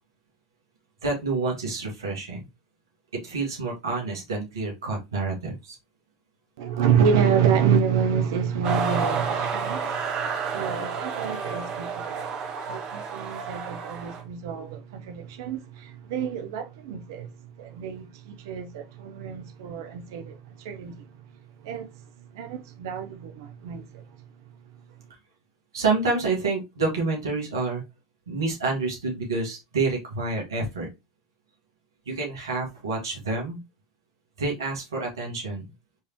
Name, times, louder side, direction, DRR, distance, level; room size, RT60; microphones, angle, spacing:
voice 1, 1.0-2.5 3.2-5.8 25.7-27.8 28.3-30.9 32.1-33.6 34.4-35.7, right 3 dB, 80° right, 1.9 m, -28 dB
voice 2, 6.6-21.1 21.6-21.9 22.3-24.0, right 7 dB, 65° right, 0.8 m, -28 dB
sound 1, 8.6-14.2, right 5 dB, 40° right, 1.3 m, -30 dB
4.5 x 3.4 x 3.0 m
hypercardioid pair, 95°, 2 cm